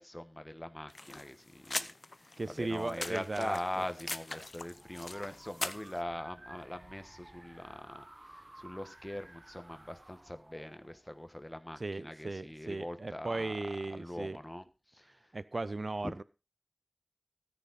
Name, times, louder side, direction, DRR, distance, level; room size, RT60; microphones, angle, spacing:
voice 1, 0.0-1.9 2.2-8.0 8.3-13.6 13.9-14.6 14.9-15.1 16.0-16.1, left 1 dB, 20° left, 1.3 m, -42 dB
sound 1, 0.9-6.0, left 2 dB, 65° left, 0.8 m, -42 dB
voice 2, 2.4-3.8 11.8-14.4 15.3-16.2, right 2 dB, 70° right, 0.5 m, -37 dB
sound 2, 4.4-11.6, right 1 dB, 35° right, 1.2 m, -55 dB
13.5 x 9.7 x 4.1 m
wide cardioid pair, 45°, 0 cm